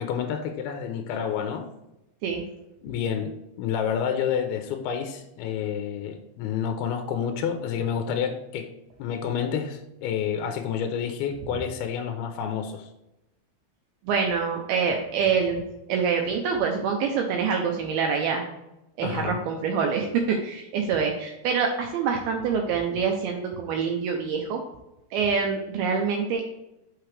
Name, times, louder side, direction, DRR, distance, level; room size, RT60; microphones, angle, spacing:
voice 1, 0.0-1.7 2.8-3.3 3.6-8.7 9.0-12.9 19.0-19.4, left 8 dB, 85° left, 6 dB, 2.2 m, -29 dB
voice 2, 14.1-18.4 19.0-24.6 25.1-26.4, right 6 dB, 80° right, 2 dB, 2.3 m, -26 dB
6.2 x 5.8 x 3.3 m, 0.90 s
omnidirectional pair, 5.0 m